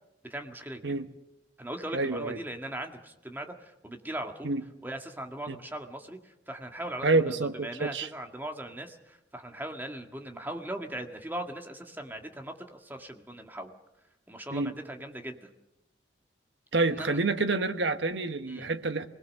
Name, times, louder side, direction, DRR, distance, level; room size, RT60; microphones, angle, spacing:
voice 1, 0.3-0.9 1.6-4.5 4.8-13.7 14.3-15.5 16.9-17.2 18.5-18.7, right 1 dB, 10° right, 4 dB, 1.8 m, -39 dB
voice 2, 1.9-2.4 4.4-4.6 5.5-5.6 7.0-8.1 14.5-14.7 16.7-19.1, right 3 dB, 80° right, 9 dB, 1.3 m, -28 dB
25.5 x 19.5 x 6.5 m, 0.92 s
head